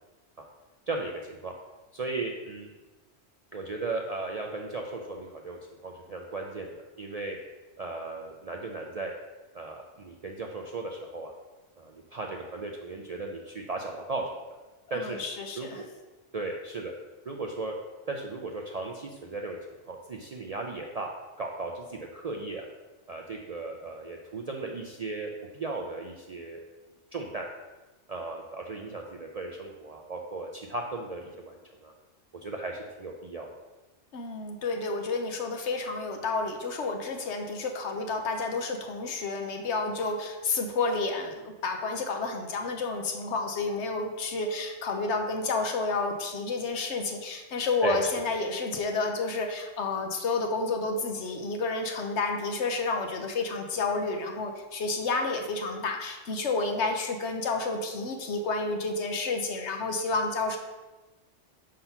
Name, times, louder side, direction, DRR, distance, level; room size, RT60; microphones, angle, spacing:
voice 1, 0.9-1.5 1.9-2.7 3.5-7.4 7.8-9.1 9.5-11.3 11.8-14.2 14.9-15.2 15.6-15.9 16.3-16.9 17.2-17.7 18.1-19.6 19.9-21.1 21.4-22.7 23.1-26.6 27.1-27.5 28.1-31.9 32.4-33.5 47.8-48.0, right 3 dB, 50° right, 1 dB, 0.4 m, -36 dB
voice 2, 14.9-15.8 34.1-60.6, left 3 dB, 70° left, 4 dB, 1.1 m, -30 dB
5.6 x 3.8 x 5.7 m, 1.2 s
omnidirectional pair, 1.2 m